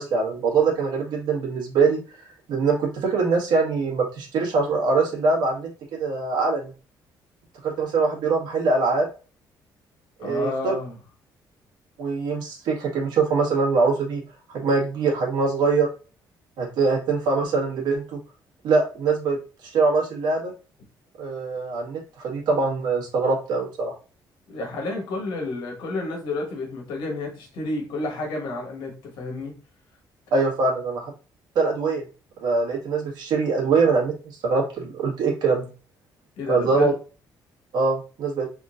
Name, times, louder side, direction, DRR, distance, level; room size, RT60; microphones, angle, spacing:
voice 1, 0.0-2.0 2.5-6.7 7.6-9.1 10.2-10.7 12.0-14.2 14.5-15.9 16.6-18.2 18.6-19.4 19.6-20.5 21.2-23.9 30.3-31.1 31.5-32.0 32.4-34.1 34.4-35.7 36.5-36.9 37.7-38.5, right 4 dB, 70° right, -1 dB, 1.5 m, -23 dB
voice 2, 10.2-10.9 24.5-29.5 36.4-36.9, left 2 dB, 85° left, 0 dB, 1.5 m, -30 dB
3.9 x 3.6 x 2.5 m, 0.35 s
cardioid pair, 165°, 8 cm